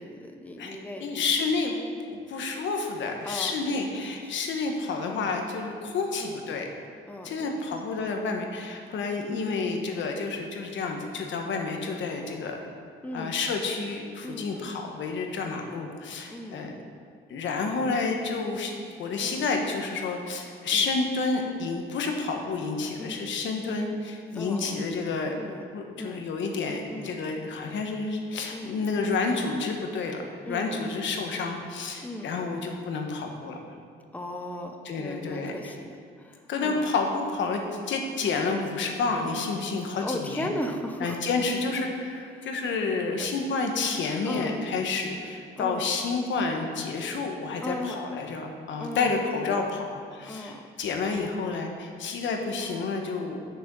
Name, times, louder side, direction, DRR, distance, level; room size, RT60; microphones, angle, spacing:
voice 1, 0.0-1.2 3.2-4.3 6.2-6.4 7.1-7.8 9.5-9.8 13.0-13.4 14.2-14.6 16.3-16.8 19.2-19.4 20.7-20.9 23.0-23.2 24.3-24.8 25.4-25.7 26.0-26.3 26.9-27.2 28.5-28.8 30.5-31.0 32.0-32.3 34.1-36.9 40.0-41.2 42.4-42.5 43.2-43.3 43.6-43.7 44.2-44.6 45.6-45.9 47.6-48.0 48.8-49.3 50.3-50.7 52.6-52.8, left 1 dB, 10° left, 4 dB, 0.7 m, -37 dB
voice 2, 1.0-1.7 2.1-6.7 7.2-12.6 13.1-16.7 17.3-18.7 19.0-25.3 25.7-33.6 34.8-35.7 36.5-37.6 37.9-40.5 41.0-53.4, left 4 dB, 70° left, 3 dB, 1.2 m, -30 dB
6.8 x 6.2 x 6.1 m, 2.3 s
cardioid pair, 90°, 20 cm